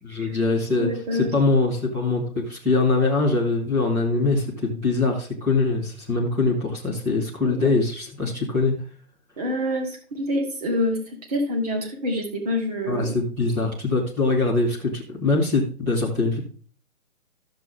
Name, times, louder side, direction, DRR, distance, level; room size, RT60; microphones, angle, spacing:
voice 1, 0.0-8.7 12.9-16.4, left 3 dB, 5° right, -4 dB, 1.0 m, -23 dB
voice 2, 0.8-1.3 7.4-7.7 9.4-11.0 11.3-13.1, left 1 dB, 25° right, 2 dB, 2.1 m, -26 dB
13.5 x 7.5 x 3.7 m, 0.42 s
hypercardioid pair, 175°, 44 cm